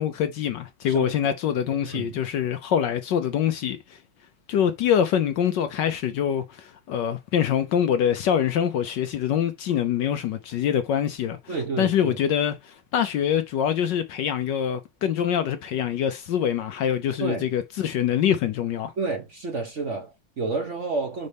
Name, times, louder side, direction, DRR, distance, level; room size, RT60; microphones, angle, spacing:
voice 1, 0.0-4.0 4.5-18.9, left 9 dB, 70° left, 1.1 m, -25 dB
voice 2, 1.8-2.2 11.5-12.2 17.2-17.5 19.0-21.3, right 3 dB, 50° right, 1.0 m, -30 dB
5.3 x 5.2 x 3.4 m
omnidirectional pair, 2.3 m